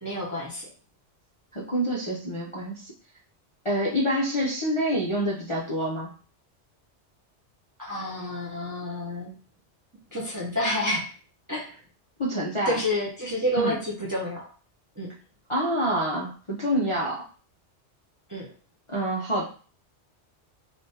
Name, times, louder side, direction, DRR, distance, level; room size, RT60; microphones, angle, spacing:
voice 1, 0.0-0.6 7.8-9.3 10.1-11.1 11.5-11.7 12.7-14.5 15.0-15.1 18.3-18.5, left 1 dB, 20° right, -5 dB, 0.5 m, -29 dB
voice 2, 1.5-2.9 3.6-6.1 12.2-12.8 13.6-13.8 15.5-17.2 18.9-19.5, equal, 40° left, -6 dB, 0.5 m, -27 dB
3.3 x 2.5 x 2.7 m, 0.40 s
omnidirectional pair, 1.2 m